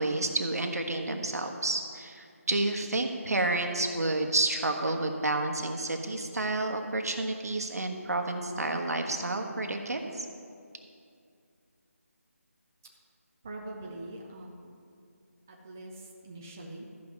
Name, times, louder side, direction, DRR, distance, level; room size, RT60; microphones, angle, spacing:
voice 1, 0.0-10.3, right 2 dB, 80° right, 4 dB, 1.3 m, -30 dB
voice 2, 13.4-14.8 15.5-16.9, right 1 dB, 10° right, -1 dB, 0.4 m, -43 dB
13.5 x 5.4 x 6.0 m, 2.4 s
figure-of-eight pair, 175°, 8 cm